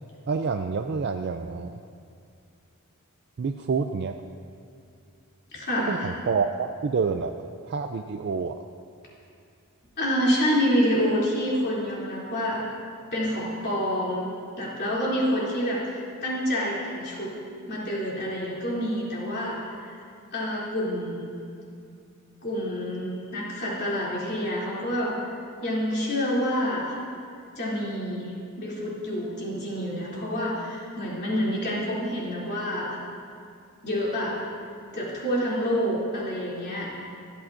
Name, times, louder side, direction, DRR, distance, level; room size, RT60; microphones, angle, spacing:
voice 1, 0.3-1.8 3.4-4.2 5.9-7.3 7.6-8.5, right 5 dB, 50° right, 6 dB, 0.4 m, -28 dB
voice 2, 5.5-6.1 10.0-12.6 13.1-14.3 14.6-17.3 17.7-20.0 20.3-21.3 22.4-27.0 27.5-28.3 28.6-33.0 33.8-34.4 34.9-37.0, equal, 50° left, -6 dB, 2.9 m, -27 dB
25.0 x 8.7 x 2.6 m, 2.4 s
head